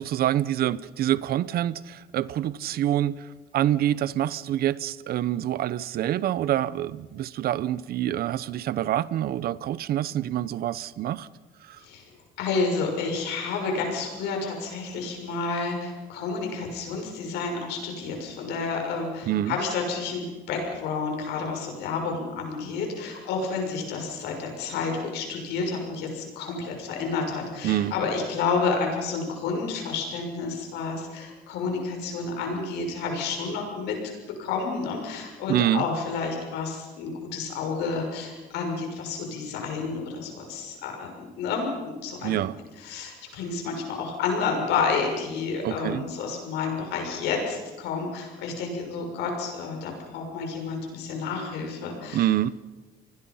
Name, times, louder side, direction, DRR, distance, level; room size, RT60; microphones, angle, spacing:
voice 1, 0.0-3.2 3.5-11.3 11.7-11.8 19.3-19.6 27.6-27.9 35.5-35.9 42.2-42.6 45.6-46.0 52.1-52.5, right 12 dB, 65° right, 0.8 m, -26 dB
voice 2, 11.8-12.1 12.4-34.0 34.3-42.4 42.8-52.3, left 4 dB, 85° left, 6.5 m, -30 dB
28.5 x 20.5 x 5.7 m
cardioid pair, 110°, 17 cm